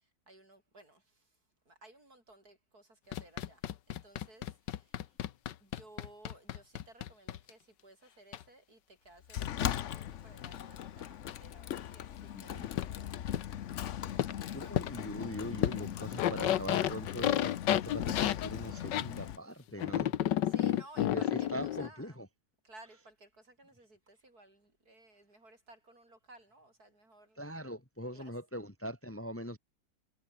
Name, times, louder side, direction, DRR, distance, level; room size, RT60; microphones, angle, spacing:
voice 1, 0.3-1.0 1.7-3.6 3.9-4.9 5.6-11.0 11.4-13.7 14.1-14.7 20.5-22.0 22.6-27.4 28.1-28.3, right 2 dB, 55° right, 8.0 m, -58 dB
sound 1, 3.1-7.5 8.3-8.4 9.7-9.8 10.4-10.5 11.3-11.4 12.8-12.9 13.3-13.4 14.2-14.3 14.8-14.9 15.6-19.1 19.8-21.9, left 12 dB, 85° left, 1.6 m, -31 dB
Sliding door, 9.3-19.4, left 10 dB, 55° left, 0.9 m, -39 dB
voice 2, 12.3-12.7 14.5-20.1 20.5-20.6 21.0-22.3 27.4-29.6, equal, 5° left, 2.1 m, -42 dB
omnidirectional pair, 1.9 m